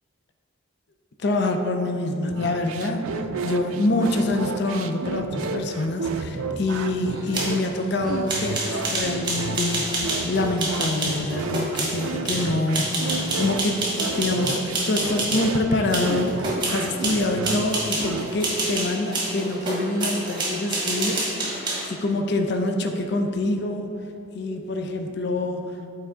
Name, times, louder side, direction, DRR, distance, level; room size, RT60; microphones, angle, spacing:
voice 1, 1.2-23.9 24.3-25.6, left 2 dB, 55° left, 5 dB, 0.5 m, -26 dB
sound 1, 2.3-18.3, right 4 dB, 85° right, 0.4 m, -32 dB
sound 2, 7.1-15.5 15.9-21.9, right 2 dB, 20° right, 1.1 m, -28 dB
7.3 x 4.5 x 3.7 m, 2.5 s
head